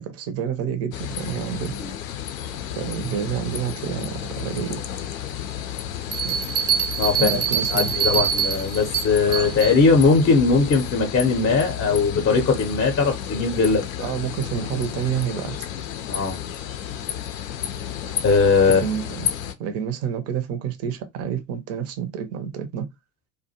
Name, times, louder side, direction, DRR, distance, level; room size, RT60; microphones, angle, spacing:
voice 1, 0.0-1.7 2.8-4.8 6.2-6.4 7.2-8.2 14.0-15.7 18.7-19.3 19.6-22.8, right 8 dB, 35° right, 0.6 m, -29 dB
sound 1, 0.9-19.5, left 10 dB, 65° left, 0.6 m, -32 dB
sound 2, 6.1-9.8, right 8 dB, 80° right, 1.0 m, -24 dB
voice 2, 7.0-7.4 7.7-13.9 14.6-14.7 16.1-16.4 18.2-18.8, left 4 dB, 25° left, 0.7 m, -20 dB
2.4 x 2.2 x 2.7 m
figure-of-eight pair, 75°, 44 cm